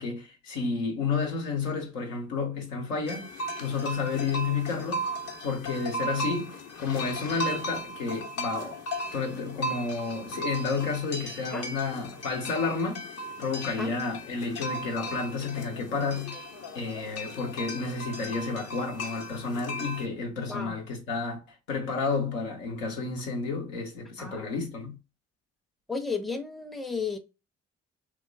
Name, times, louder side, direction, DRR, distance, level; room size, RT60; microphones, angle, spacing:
voice 1, 0.0-3.3 3.6-5.1 5.4-8.8 9.1-13.1 13.4-16.4 16.7-21.4 21.7-25.0, left 4 dB, 85° left, 0.7 m, -31 dB
sound 1, 3.1-20.1, right 1 dB, 45° left, 0.7 m, -37 dB
voice 2, 25.9-27.2, left 4 dB, ahead, 0.5 m, -33 dB
2.9 x 2.0 x 2.5 m
hypercardioid pair, 45°, 35 cm